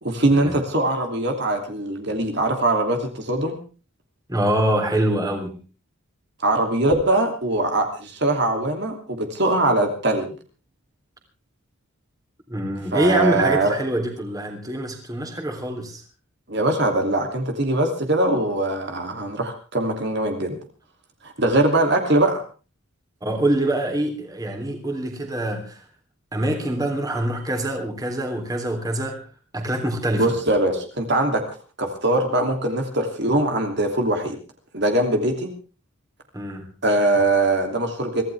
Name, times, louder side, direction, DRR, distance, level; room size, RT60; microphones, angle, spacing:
voice 1, 0.0-3.6 6.4-10.3 12.9-13.7 16.5-20.6 21.2-22.4 30.2-31.4 31.8-34.4 34.7-35.5 36.8-38.2, right 2 dB, 55° right, 3 dB, 2.9 m, -22 dB
voice 2, 4.3-5.6 12.5-16.0 23.2-25.8 26.3-29.3 29.5-30.3 36.3-36.7, right 1 dB, 15° right, 2 dB, 3.3 m, -25 dB
24.5 x 16.0 x 3.5 m, 0.35 s
head